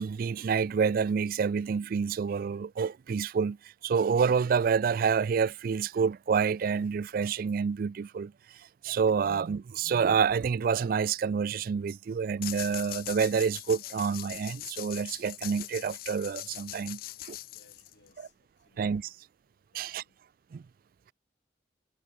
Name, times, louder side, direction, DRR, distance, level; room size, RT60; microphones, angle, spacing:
voice 1, 0.0-3.6 3.8-8.3 8.8-17.4 18.2-18.3 18.8-19.1 19.7-20.0 20.5-20.6, right 6 dB, 55° right, 0.3 m, -28 dB
sound 1, 12.4-18.1, left 16 dB, 55° left, 0.4 m, -41 dB
voice 2, 17.4-19.1 19.7-20.2, left 4 dB, 85° left, 2.4 m, -64 dB
head